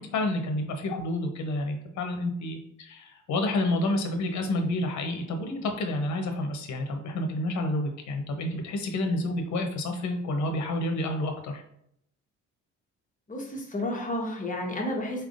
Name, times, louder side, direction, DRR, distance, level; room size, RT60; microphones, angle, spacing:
voice 1, 0.0-11.6, left 1 dB, 70° left, 5 dB, 0.8 m, -29 dB
voice 2, 13.3-15.2, left 1 dB, 25° left, 0 dB, 1.1 m, -31 dB
4.2 x 3.4 x 2.5 m, 0.70 s
cardioid pair, 90°, 30 cm